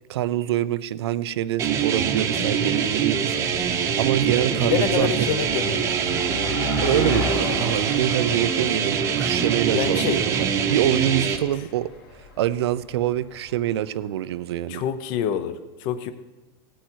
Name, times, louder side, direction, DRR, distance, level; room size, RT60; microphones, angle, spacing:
voice 1, 0.1-3.4 4.0-5.1 6.8-11.9 12.2-14.8, right 12 dB, 85° right, 16 dB, 0.6 m, -25 dB
sound 1, 1.6-11.4, right 7 dB, 20° right, 0.9 m, -24 dB
Car passing by, 1.9-2.0 2.8-3.1 3.3-13.8, left 5 dB, 75° left, 3.7 m, -35 dB
voice 2, 4.3-5.9 9.7-10.2 14.7-16.1, left 9 dB, 40° left, 12 dB, 0.8 m, -27 dB
17.5 x 8.9 x 4.6 m, 1.2 s
supercardioid pair, 170°, 13 cm